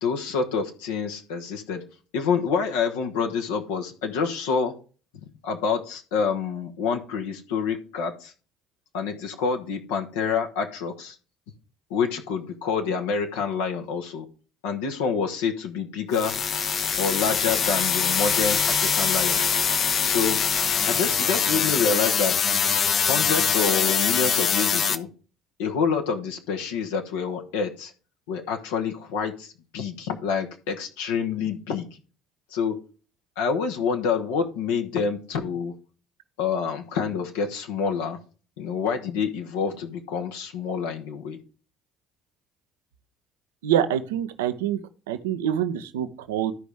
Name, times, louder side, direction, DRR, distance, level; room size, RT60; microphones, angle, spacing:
voice 1, 0.0-1.8 2.1-4.7 5.4-8.3 8.9-11.2 11.9-14.2 14.6-16.3 17.0-19.6 20.0-20.4 20.9-22.5 23.0-25.1 25.6-27.9 28.3-31.9 32.5-32.8 33.4-35.7 36.4-38.2 38.6-41.4, left 6 dB, 75° left, 3 dB, 1.1 m, -27 dB
sound 1, 16.1-25.0, left 7 dB, 45° left, 0.7 m, -23 dB
voice 2, 43.6-44.8 45.1-46.5, right 10 dB, 75° right, 11 dB, 0.7 m, -25 dB
13.5 x 5.1 x 3.4 m, 0.36 s
figure-of-eight pair, 55°, 0 cm